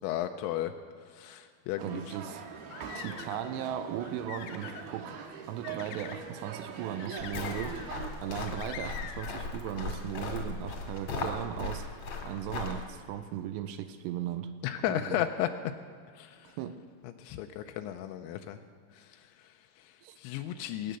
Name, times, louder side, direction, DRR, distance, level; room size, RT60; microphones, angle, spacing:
voice 1, 0.0-0.7 1.1-2.2 14.6-15.5 16.1-16.6 17.0-18.6 18.9-21.0, left 12 dB, 90° left, 6 dB, 2.9 m, -35 dB
sound 1, 1.8-8.1, right 6 dB, 65° right, 2.8 m, -43 dB
voice 2, 1.8-2.4 3.0-5.2 5.5-7.8 8.2-11.9 12.2-14.5 14.9-15.2 16.4-16.8 20.0-20.2, right 10 dB, 85° right, 10 dB, 2.7 m, -37 dB
sound 2, 2.5-3.5 4.0-4.9 5.6-6.2 7.0-8.0 8.3-9.3, left 8 dB, 70° left, 2.4 m, -44 dB
sound 3, 7.2-12.8, left 3 dB, 50° left, 2.0 m, -37 dB
19.5 x 9.4 x 6.8 m, 2.1 s
omnidirectional pair, 5.3 m